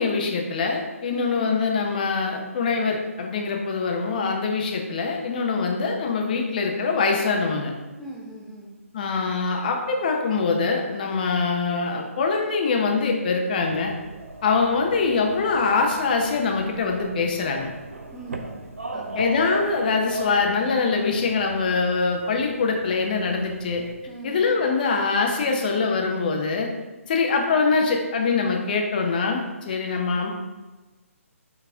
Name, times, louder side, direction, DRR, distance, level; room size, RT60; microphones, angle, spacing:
voice 1, 0.0-7.7 8.9-13.9 14.4-17.7 19.2-23.8 24.2-26.7 27.1-30.3, left 4 dB, 35° left, 2 dB, 1.0 m, -23 dB
voice 2, 8.0-8.7 18.1-18.7 18.9-19.2 24.1-24.5, right 2 dB, ahead, -5 dB, 1.0 m, -40 dB
sound 1, 13.6-23.9, right 2 dB, 70° right, 0.7 m, -37 dB
5.8 x 4.6 x 3.6 m, 1.2 s
figure-of-eight pair, 140°, 8 cm